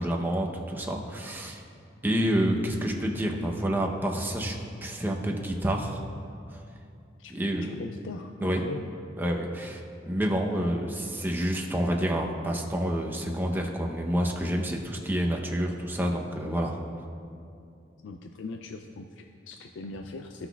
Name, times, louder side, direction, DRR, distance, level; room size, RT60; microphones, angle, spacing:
voice 1, 0.0-1.6 2.0-4.6 4.8-6.0 7.3-7.7 8.4-8.6 9.2-16.8, equal, 10° right, 1 dB, 0.7 m, -28 dB
voice 2, 7.2-8.9 18.0-20.5, left 3 dB, 90° left, 4 dB, 0.4 m, -40 dB
15.5 x 6.0 x 2.3 m, 2.5 s
head